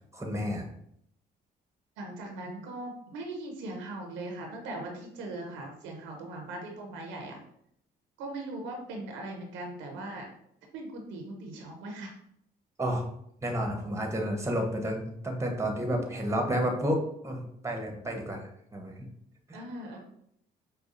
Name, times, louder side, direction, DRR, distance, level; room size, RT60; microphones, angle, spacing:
voice 1, 0.1-0.7 12.8-13.0 13.4-19.1 19.5-19.6, equal, 15° right, 2 dB, 1.0 m, -31 dB
voice 2, 2.0-7.4 8.2-10.3 10.7-12.1 19.5-20.0, right 2 dB, 85° right, 1 dB, 0.8 m, -39 dB
4.9 x 2.2 x 2.6 m, 0.71 s
supercardioid pair, 65°, 19 cm